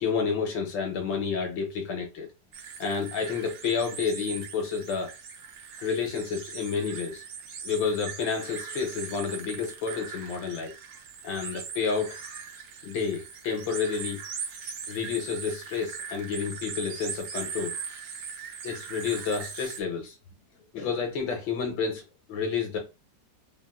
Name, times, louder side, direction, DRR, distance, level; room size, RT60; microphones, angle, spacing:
voice 1, 0.0-2.3 2.8-5.1 5.8-7.2 7.6-10.7 11.2-12.2 12.8-14.2 14.9-17.8 18.6-20.2 20.7-22.8, left 5 dB, 85° left, 1.4 m, -30 dB
sound 1, 2.5-19.8, right 6 dB, 70° right, 0.9 m, -40 dB
3.4 x 2.3 x 2.3 m
omnidirectional pair, 2.0 m